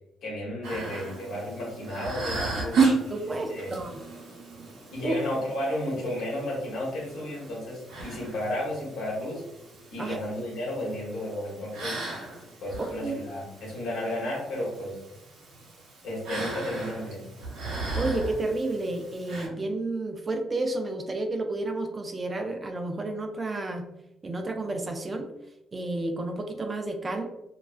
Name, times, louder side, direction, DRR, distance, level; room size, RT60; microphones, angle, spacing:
voice 1, 0.2-2.8 3.5-3.7 4.9-9.4 9.9-12.0 12.6-15.0 16.0-17.2, left 1 dB, 80° left, -4 dB, 1.0 m, -33 dB
sound 1, 0.6-19.5, right 4 dB, 90° right, 0.7 m, -34 dB
voice 2, 3.1-4.0 5.0-5.2 10.0-10.2 13.0-13.2 18.0-23.8 24.2-25.3 25.7-27.3, right 2 dB, 30° right, 5 dB, 0.3 m, -31 dB
2.3 x 2.2 x 2.4 m, 0.90 s
cardioid pair, 90°, 0 cm